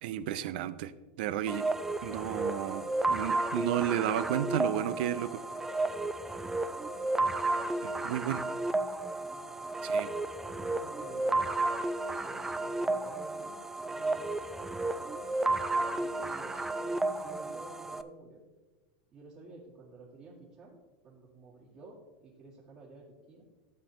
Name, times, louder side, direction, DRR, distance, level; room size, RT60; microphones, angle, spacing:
voice 1, 0.0-0.9 1.2-1.7 2.0-5.4 7.8-8.4 9.8-10.1, right 11 dB, 70° right, 15 dB, 0.6 m, -32 dB
sound 1, 1.5-18.0, right 2 dB, 5° right, 0.4 m, -32 dB
sound 2, 3.2-6.7 9.1-11.2, left 5 dB, 50° left, 1.2 m, -55 dB
voice 2, 9.3-9.8 10.5-11.5 12.2-14.5 14.8-15.2 15.8-18.4 19.1-20.8 21.0-23.5, right 3 dB, 35° right, -7 dB, 2.5 m, -52 dB
12.5 x 7.9 x 3.2 m, 1.2 s
supercardioid pair, 130°, 5 cm